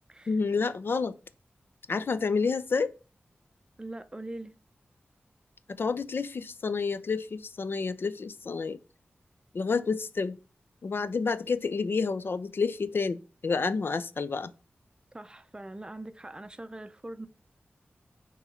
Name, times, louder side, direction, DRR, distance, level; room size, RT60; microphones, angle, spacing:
voice 1, 0.3-1.2 1.9-2.9 5.7-8.8 9.5-10.4 10.8-14.5, left 4 dB, 65° left, 0.4 m, -29 dB
voice 2, 3.8-4.6 15.1-17.3, right 1 dB, 20° right, 0.5 m, -42 dB
5.7 x 3.0 x 5.5 m
wide cardioid pair, 95°, 4 cm